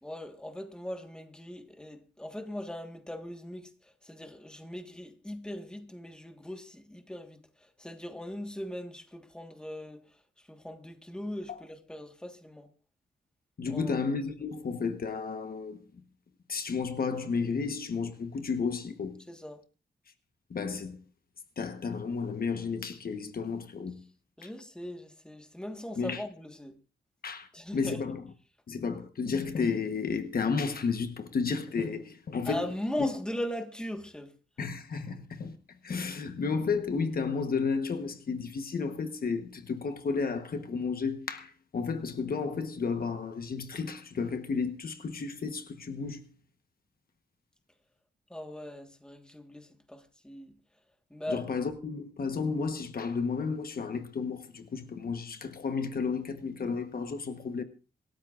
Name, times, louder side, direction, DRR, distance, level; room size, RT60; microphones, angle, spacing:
voice 1, 0.0-12.7 13.6-14.0 19.3-19.6 24.4-26.8 27.5-28.0 32.4-34.4 48.3-50.6 51.1-51.4, left 1 dB, 5° left, 1.5 m, -39 dB
voice 2, 13.6-15.8 16.5-19.2 20.5-21.0 21.6-24.0 24.4-24.5 26.0-26.2 27.2-27.5 27.7-28.2 28.7-32.6 33.0-33.1 34.6-35.6 35.8-46.3 51.3-57.6, left 5 dB, 55° left, 1.1 m, -32 dB
27.0 x 13.0 x 2.5 m
wide cardioid pair, 160°, 19 cm